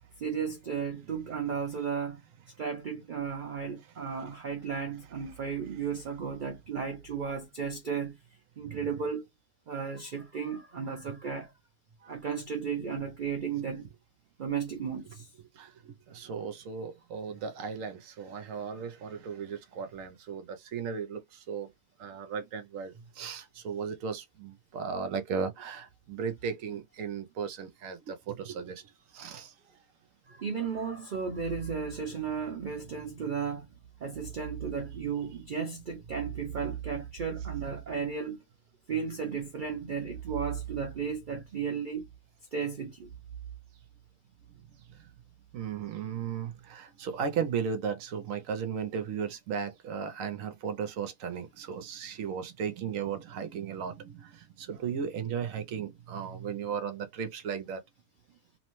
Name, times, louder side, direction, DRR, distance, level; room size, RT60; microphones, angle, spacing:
voice 1, 0.2-2.2 2.6-8.1 8.6-9.2 9.7-11.5 12.1-13.9 14.4-15.3 30.3-33.7 34.0-38.4 38.9-42.1 42.5-43.1, right 6 dB, 90° right, 0.4 m, -34 dB
voice 2, 15.5-21.7 22.0-28.8 29.1-29.5 44.5-45.0 45.5-57.8, right 6 dB, 70° right, 0.9 m, -36 dB
3.0 x 2.1 x 2.9 m
omnidirectional pair, 1.6 m